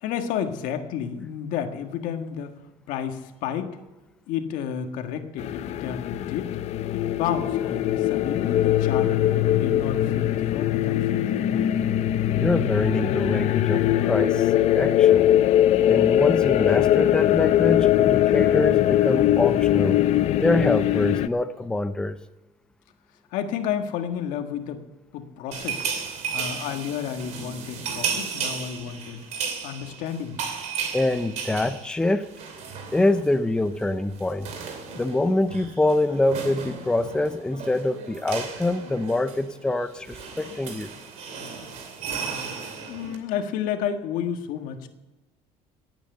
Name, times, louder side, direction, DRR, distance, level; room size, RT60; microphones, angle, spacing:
voice 1, 0.0-2.5 2.9-3.8 4.3-6.5 6.9-9.1 9.5-11.7 23.3-24.8 25.1-25.9 26.3-29.2 29.6-30.5 40.4-40.5 42.6-44.9, left 8 dB, 75° left, 6 dB, 1.7 m, -31 dB
sound 1, 5.4-21.3, left 12 dB, 55° left, 0.6 m, -21 dB
voice 2, 12.3-15.3 15.9-20.0 20.4-22.2 30.9-32.4 32.9-34.5 34.9-40.9, left 2 dB, 5° left, 10 dB, 0.5 m, -25 dB
sound 2, 25.5-33.4 33.6-33.8 34.1-43.2, right 6 dB, 60° right, 2.7 m, -34 dB
17.5 x 8.8 x 6.7 m, 1.1 s
cardioid pair, 130°, 13 cm